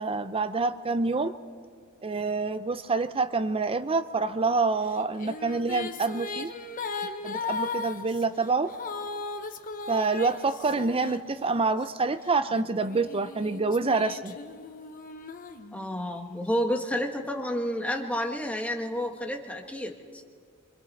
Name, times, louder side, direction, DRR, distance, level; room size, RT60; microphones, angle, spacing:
voice 1, 0.0-1.3 2.0-6.5 7.2-8.7 9.9-14.3, right 3 dB, 25° right, 10 dB, 0.6 m, -27 dB
Female singing, 4.9-11.8 12.5-16.2, left 4 dB, 40° left, 1.0 m, -37 dB
voice 2, 15.7-20.2, equal, 5° left, 2 dB, 1.4 m, -30 dB
25.5 x 25.0 x 4.2 m, 2.1 s
head